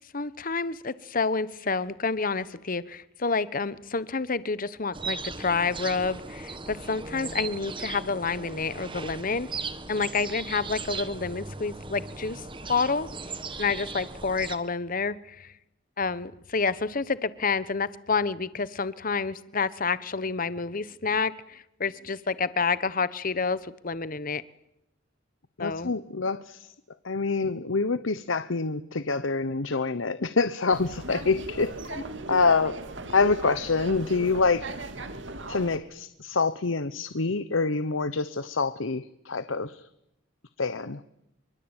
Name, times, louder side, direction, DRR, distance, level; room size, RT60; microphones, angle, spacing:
voice 1, 0.0-9.5 9.9-13.1 13.6-15.5 16.0-24.4 25.6-25.9 32.3-32.4, left 4 dB, 45° left, 16 dB, 1.1 m, -29 dB
sound 1, 4.9-14.6, right 4 dB, 25° right, 1.6 m, -38 dB
voice 2, 25.6-26.7 27.0-32.0 32.3-32.8 33.1-34.7 35.5-39.9 40.6-41.0, left 4 dB, 80° left, 13 dB, 1.0 m, -26 dB
sound 2, 30.7-35.8, right 2 dB, 65° right, 2.6 m, -38 dB
25.5 x 24.5 x 9.0 m, 0.83 s
head